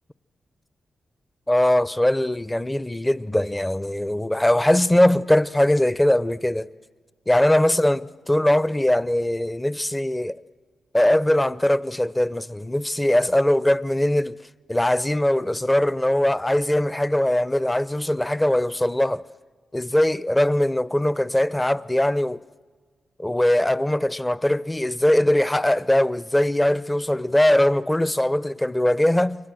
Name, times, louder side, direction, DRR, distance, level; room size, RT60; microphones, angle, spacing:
voice 1, 1.5-6.7 7.3-10.4 10.9-14.4 14.7-19.2 19.7-22.4 23.2-29.5, left 1 dB, 15° left, 0.7 m, -21 dB
29.0 x 23.0 x 7.8 m
supercardioid pair, 50°, 0 cm